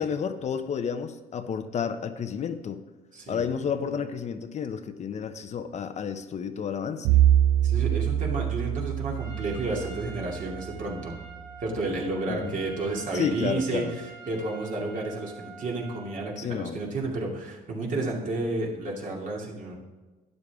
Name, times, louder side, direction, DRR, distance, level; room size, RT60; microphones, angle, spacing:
voice 1, 0.0-2.8 3.3-7.2 12.3-12.6 13.1-13.9 16.4-16.8, left 7 dB, 40° left, 9 dB, 0.7 m, -31 dB
voice 2, 3.1-3.4 7.1-7.2 7.6-11.2 11.6-13.9 14.3-19.7, right 2 dB, 50° right, -1 dB, 2.5 m, -31 dB
Bowed string instrument, 7.0-11.2, right 11 dB, 85° right, 0.4 m, -25 dB
Trumpet, 9.1-16.5, right 5 dB, 20° right, 2.3 m, -46 dB
12.0 x 9.6 x 3.5 m, 1.2 s
cardioid pair, 110°, 17 cm